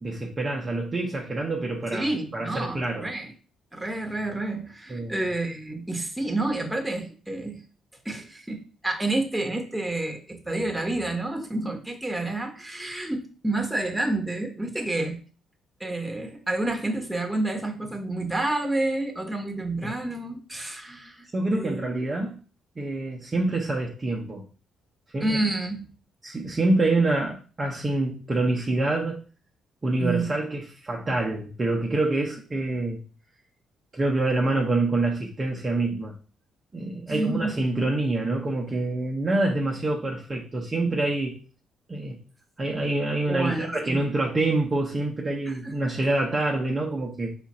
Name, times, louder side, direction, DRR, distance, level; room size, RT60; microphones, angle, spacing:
voice 1, 0.0-2.1 2.3-3.1 4.9-5.2 21.3-22.4 22.8-24.4 25.1-25.4 26.2-29.2 29.8-33.0 33.9-36.2 36.7-41.4 41.9-42.2 42.6-47.4, right 2 dB, 25° right, 0.7 m, -26 dB
voice 2, 1.9-3.3 3.7-7.6 8.0-15.2 15.8-21.9 25.2-25.8 30.0-30.3 37.1-37.6 43.3-44.0 45.4-45.7, right 2 dB, 5° right, 1.0 m, -29 dB
5.0 x 2.4 x 4.1 m
cardioid pair, 90°, 0 cm